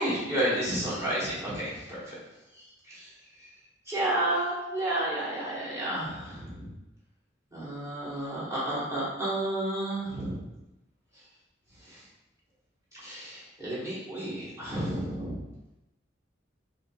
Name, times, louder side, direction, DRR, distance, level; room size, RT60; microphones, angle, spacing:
voice 1, 0.0-2.2 2.5-3.1 3.4-3.5 3.9-6.7 7.5-10.4 11.8-12.0 13.0-15.4, right 1 dB, 15° right, -9 dB, 1.3 m, -31 dB
4.9 x 2.7 x 2.3 m, 0.96 s
head